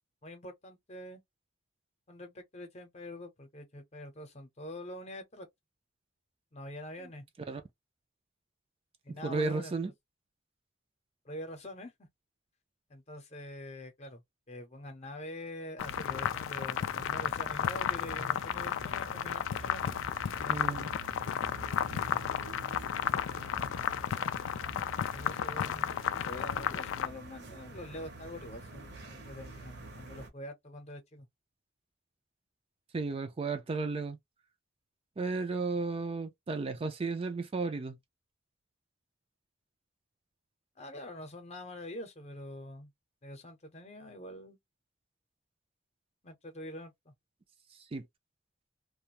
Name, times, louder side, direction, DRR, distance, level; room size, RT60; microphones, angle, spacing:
voice 1, 0.2-1.2 2.1-5.5 6.5-7.3 9.0-9.8 11.2-12.1 12.9-20.0 20.4-20.8 25.1-31.3 40.8-42.9 43.2-44.6 46.2-47.1, left 1 dB, 35° left, 0.8 m, -45 dB
voice 2, 9.2-9.9 20.5-20.9 32.9-34.2 35.2-38.0 47.9-48.0, right 3 dB, 30° right, 0.4 m, -33 dB
sound 1, 15.8-27.1, left 9 dB, 90° left, 0.3 m, -33 dB
sound 2, 15.8-30.3, right 2 dB, 60° right, 0.8 m, -47 dB
2.4 x 2.2 x 2.9 m
head